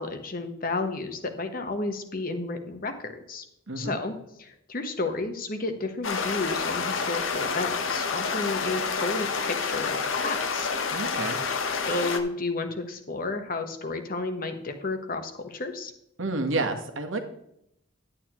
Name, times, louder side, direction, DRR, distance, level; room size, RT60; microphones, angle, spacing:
voice 1, 0.0-3.4 3.8-10.7 11.9-15.9, left 3 dB, 45° left, 7 dB, 1.1 m, -32 dB
voice 2, 3.7-4.0 10.9-11.4 16.2-17.2, right 2 dB, 70° right, 5 dB, 1.2 m, -29 dB
sound 1, 6.0-12.2, left 5 dB, 75° left, 0.9 m, -28 dB
11.0 x 9.0 x 3.0 m, 0.77 s
head